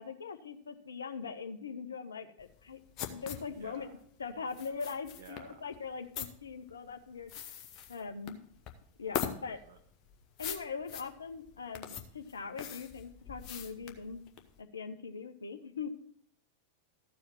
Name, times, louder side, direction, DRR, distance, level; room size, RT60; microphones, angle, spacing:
voice 1, 0.0-2.8 3.1-7.5 7.9-8.5 9.0-9.6 10.4-14.2 14.6-15.9, left 5 dB, 70° left, 7 dB, 0.8 m, -41 dB
sound 1, 2.4-14.6, left 9 dB, 40° left, 1.1 m, -42 dB
voice 2, 3.5-3.9 5.2-5.7 9.6-9.8, right 7 dB, 55° right, 7 dB, 0.9 m, -52 dB
14.0 x 4.9 x 6.0 m, 0.64 s
figure-of-eight pair, 90°, 0 cm